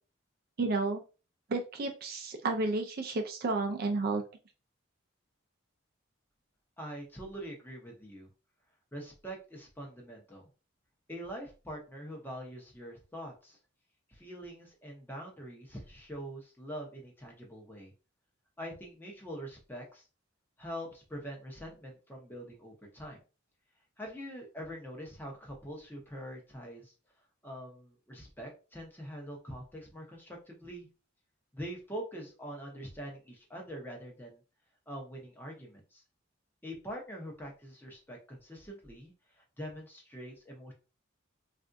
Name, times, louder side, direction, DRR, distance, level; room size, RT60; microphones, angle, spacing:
voice 1, 0.6-1.0 1.5-4.2, right 3 dB, 50° right, 4 dB, 0.4 m, -31 dB
voice 2, 6.8-8.3 8.9-10.5 11.1-13.6 14.1-17.9 18.6-20.0 20.6-23.2 24.0-26.9 27.4-30.9 31.5-34.4 34.9-36.0 36.6-40.7, equal, 10° left, 0 dB, 0.8 m, -44 dB
3.4 x 2.5 x 2.5 m, 0.33 s
head